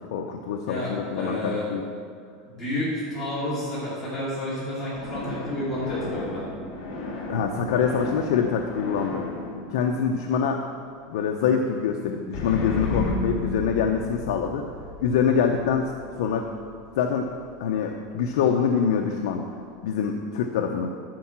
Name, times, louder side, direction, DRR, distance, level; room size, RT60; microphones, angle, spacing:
voice 1, 0.1-1.8 7.3-9.3 9.7-10.6 11.1-14.7 15.0-15.9 16.2-16.5 17.0-17.3 17.6-19.4 19.8-20.9, left 7 dB, 70° left, 3 dB, 0.7 m, -25 dB
voice 2, 0.7-1.7 2.4-6.5, left 1 dB, 15° left, -9 dB, 2.6 m, -30 dB
sound 1, 4.9-10.9 12.3-17.6, left 2 dB, 50° left, 2.9 m, -34 dB
12.5 x 4.8 x 7.3 m, 2.1 s
supercardioid pair, 175°, 2 cm